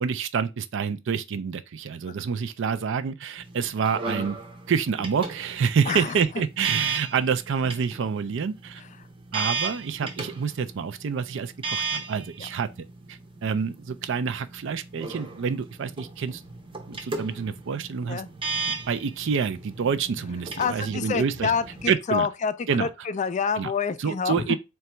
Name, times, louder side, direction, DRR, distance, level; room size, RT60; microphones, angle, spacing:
voice 1, 0.0-4.4 4.7-8.8 9.3-12.7 13.1-16.4 16.9-18.2 18.7-21.5 21.9-22.3 22.7-22.9 23.5-23.7 24.0-24.6, right 6 dB, 60° right, 0.4 m, -27 dB
sound 1, 3.4-21.9, right 4 dB, 25° right, 0.7 m, -36 dB
voice 2, 20.6-24.6, left 6 dB, 35° left, 0.3 m, -27 dB
3.8 x 2.3 x 4.2 m
head